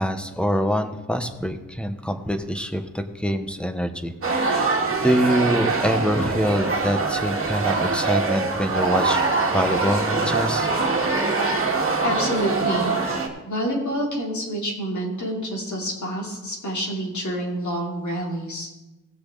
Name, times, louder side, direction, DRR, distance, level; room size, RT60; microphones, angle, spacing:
voice 1, 0.0-4.7 5.0-9.2 9.5-10.7, equal, 5° left, 7 dB, 1.2 m, -25 dB
sound 1, 4.2-13.3, right 3 dB, 45° right, 2.1 m, -23 dB
voice 2, 12.0-12.9 13.4-18.7, equal, 60° left, -2 dB, 3.5 m, -27 dB
17.5 x 6.8 x 4.0 m, 1.1 s
cardioid pair, 65°, 32 cm